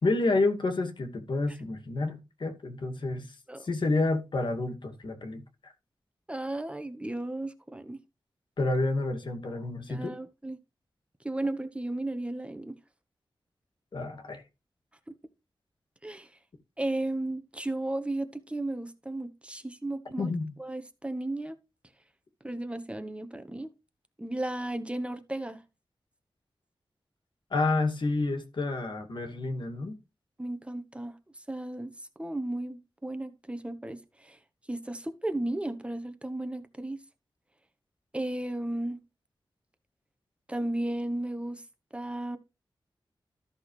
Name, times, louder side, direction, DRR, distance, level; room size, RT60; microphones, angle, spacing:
voice 1, 0.0-3.4 3.6-5.7 8.6-10.1 13.9-14.4 20.2-20.5 27.5-30.0, left 2 dB, 65° left, 2.1 m, -29 dB
voice 2, 6.3-8.0 9.9-10.6 11.2-12.7 15.1-15.2 16.0-16.3 16.8-20.3 20.6-21.6 22.4-23.7 24.2-25.6 30.4-31.2 31.5-31.9 32.2-34.4 34.7-37.0 38.1-39.0 40.5-41.6 41.9-42.4, right 1 dB, 15° right, 1.2 m, -34 dB
13.5 x 6.3 x 3.2 m
wide cardioid pair, 110°, 9 cm